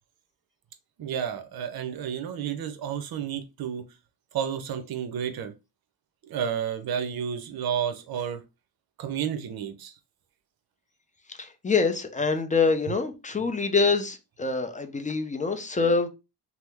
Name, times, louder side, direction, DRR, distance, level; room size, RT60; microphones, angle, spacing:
voice 1, 1.0-3.8 4.3-5.5 6.3-8.4 9.0-9.9, right 8 dB, 60° right, 0.7 m, -31 dB
voice 2, 11.4-16.1, left 4 dB, 20° left, 0.4 m, -25 dB
2.8 x 2.0 x 3.4 m
cardioid pair, 85°, 42 cm